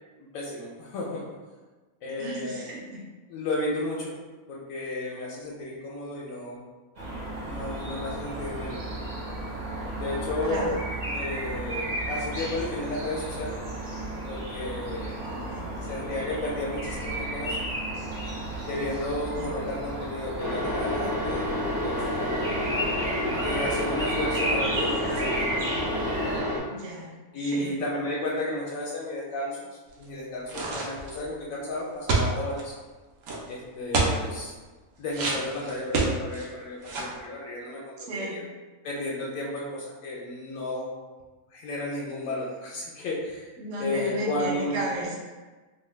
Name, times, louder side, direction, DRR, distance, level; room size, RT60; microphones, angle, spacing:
voice 1, 0.2-1.3 2.0-2.7 3.3-4.1 4.5-6.6 7.4-8.8 10.0-10.7 11.1-13.5 14.3-15.2 15.9-17.6 18.7-22.5 23.4-25.5 27.3-32.7 33.5-34.5 35.0-38.0 38.3-38.4 38.8-40.9 41.5-43.5 43.8-44.8, left 2 dB, 75° left, -4 dB, 1.0 m, -33 dB
voice 2, 2.2-3.0 10.4-10.8 15.2-15.8 19.3-19.5 26.7-27.1 27.4-27.7 38.1-38.4 43.6-45.2, right 1 dB, 65° right, -3 dB, 0.9 m, -34 dB
sound 1, 6.9-26.4, right 1 dB, 45° right, 0.6 m, -33 dB
sound 2, 20.4-26.6, left 1 dB, 30° left, 0.4 m, -29 dB
sound 3, 30.5-31.2 32.1-32.6 33.2-33.4 33.9-34.2 35.1-36.5 36.8-37.2, right 3 dB, 85° right, 1.1 m, -26 dB
2.8 x 2.2 x 3.2 m, 1.3 s
omnidirectional pair, 1.5 m